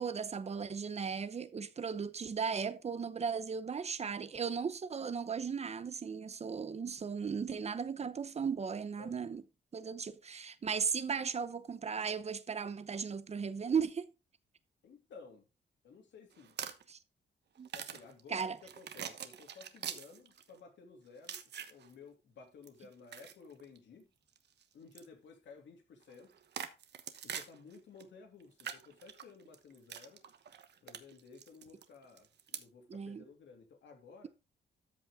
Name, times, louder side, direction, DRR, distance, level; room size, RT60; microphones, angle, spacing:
voice 1, 0.0-9.4 9.7-14.1 16.9-17.0 17.6-17.7 18.3-18.6 32.9-33.2, right 6 dB, 35° right, 0.8 m, -36 dB
voice 2, 9.0-9.4 14.8-15.5 15.8-16.6 17.7-21.4 21.7-24.1 24.7-26.4 27.2-30.2 30.8-34.3, left 4 dB, 85° left, 2.8 m, -55 dB
sound 1, 16.3-16.9 17.6-20.6 21.2-21.9 22.6-23.8 24.3-24.6 24.9-25.1 26.0-28.0 28.4-32.6, right 8 dB, 65° right, 1.1 m, -45 dB
13.5 x 5.4 x 3.6 m
wide cardioid pair, 135°, 18 cm